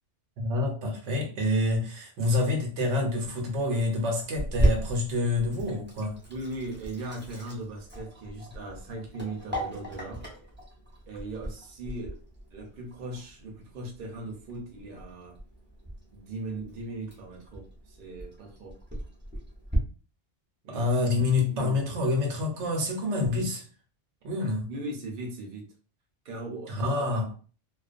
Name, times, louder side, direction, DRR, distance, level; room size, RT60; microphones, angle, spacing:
voice 1, 0.4-6.2 20.7-23.6 24.2-24.7 26.7-27.3, left 2 dB, 85° right, 1.0 m, -27 dB
Sink (filling or washing), 4.4-19.8, right 1 dB, 10° right, 0.6 m, -36 dB
voice 2, 6.3-10.2 11.1-12.2 12.5-15.4 16.1-18.8 20.6-20.9 21.5-21.9 24.7-25.7 26.2-27.2, right 2 dB, 55° right, 0.8 m, -38 dB
2.3 x 2.2 x 2.4 m
omnidirectional pair, 1.2 m